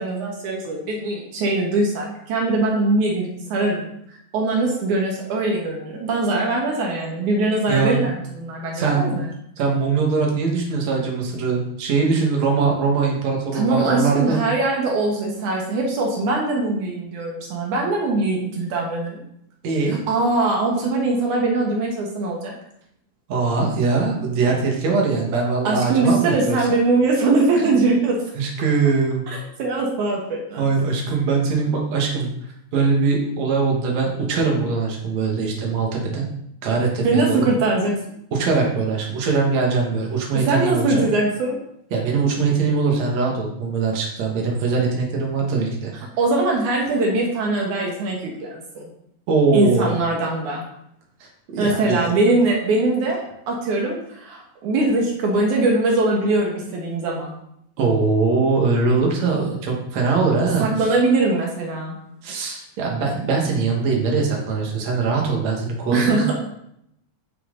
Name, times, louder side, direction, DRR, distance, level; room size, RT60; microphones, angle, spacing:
voice 1, 0.0-3.9 4.3-9.3 13.5-19.2 20.1-22.5 25.6-28.2 29.3-30.6 37.0-37.9 40.4-41.6 46.2-48.9 49.5-50.6 51.6-53.2 53.5-57.3 60.6-61.9 65.9-66.3, right 2 dB, 85° right, -1 dB, 2.9 m, -21 dB
voice 2, 7.7-8.0 8.7-9.2 9.6-14.4 19.6-20.0 23.3-26.8 27.6-27.8 28.4-29.2 30.6-32.3 32.7-36.2 36.6-37.5 38.3-41.0 41.9-45.9 49.3-49.9 51.2-52.1 57.8-60.7 62.2-66.4, right 4 dB, 65° right, 0 dB, 2.8 m, -21 dB
10.0 x 6.0 x 3.8 m, 0.75 s
omnidirectional pair, 3.4 m